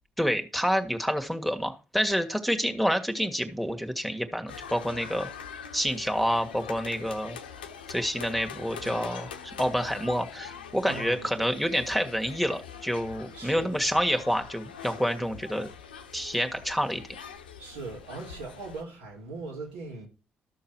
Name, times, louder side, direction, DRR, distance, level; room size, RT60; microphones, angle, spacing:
voice 1, 0.2-5.3 5.7-7.4 7.9-15.7 16.1-17.0, equal, ahead, 1.7 m, -28 dB
sound 1, 4.5-18.8, left 7 dB, 90° left, 0.7 m, -43 dB
voice 2, 10.8-11.5 13.3-13.7 17.6-20.1, right 3 dB, 85° right, 3.0 m, -40 dB
13.0 x 6.6 x 4.5 m
hypercardioid pair, 40°, 5 cm